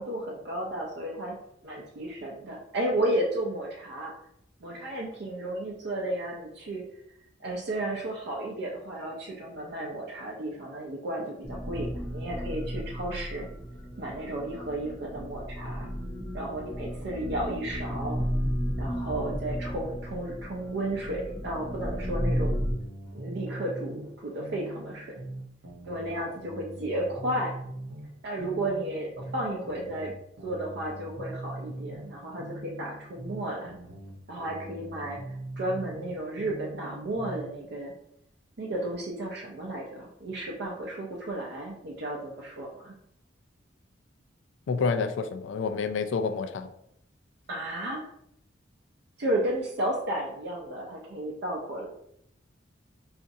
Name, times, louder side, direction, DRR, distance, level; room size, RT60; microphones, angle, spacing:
voice 1, 0.0-1.4 1.6-4.1 4.6-6.8 7.4-13.5 14.0-15.9 16.3-18.2 18.8-22.6 23.1-25.2 25.9-27.5 28.2-30.1 30.4-33.8 34.3-35.2 35.6-37.9 38.6-42.9 47.5-48.0 49.2-51.9, right 1 dB, 60° right, -2 dB, 0.5 m, -33 dB
sound 1, 11.4-22.7, equal, 15° left, 0.6 m, -33 dB
sound 2, 21.6-24.1 24.4-28.1 28.4-32.1 32.4-36.1 36.4-37.5, right 1 dB, 80° right, 0.8 m, -42 dB
voice 2, 44.7-46.7, left 5 dB, 70° left, 8 dB, 0.3 m, -28 dB
4.0 x 2.4 x 2.6 m, 0.74 s
head